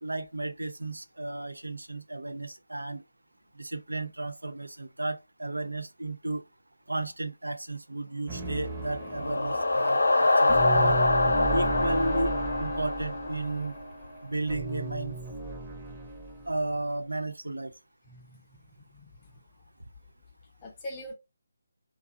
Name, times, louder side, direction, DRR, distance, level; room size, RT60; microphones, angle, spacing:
voice 1, 0.0-3.0 3.6-6.4 6.9-11.0 11.5-13.8 14.2-15.2 16.5-17.7, right 2 dB, 80° right, 0.4 m, -33 dB
sound 1, 8.3-16.5, right 2 dB, 25° right, 0.8 m, -35 dB
sound 2, 8.8-13.7, left 2 dB, 70° left, 0.5 m, -25 dB
voice 2, 18.1-19.3 20.6-21.1, left 1 dB, 25° left, 0.6 m, -44 dB
2.5 x 2.3 x 2.2 m
figure-of-eight pair, 150°, 0 cm